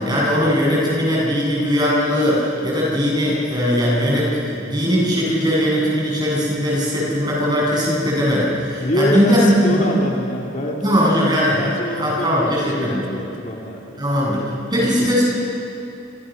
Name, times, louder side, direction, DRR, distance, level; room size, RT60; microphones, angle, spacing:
voice 1, 0.0-9.9 10.8-11.7 12.0-13.1 14.0-14.4 14.7-15.2, equal, 20° right, -3 dB, 7.9 m, -19 dB
voice 2, 8.8-14.0 14.8-15.2, equal, 40° left, -1 dB, 2.5 m, -26 dB
27.5 x 27.0 x 6.4 m, 2.8 s
head